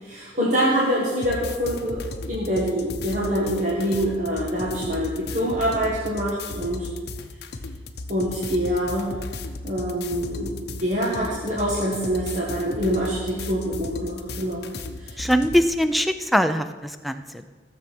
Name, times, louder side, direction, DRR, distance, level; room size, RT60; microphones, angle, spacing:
voice 1, 0.0-6.9 8.1-9.1 9.6-10.5 10.8-14.6 15.0-15.3, equal, 40° right, -6 dB, 1.8 m, -25 dB
sound 1, 1.2-15.6, left 2 dB, 60° left, 0.8 m, -36 dB
voice 2, 15.2-17.5, equal, ahead, 9 dB, 0.4 m, -22 dB
14.0 x 7.1 x 6.1 m, 1.4 s
head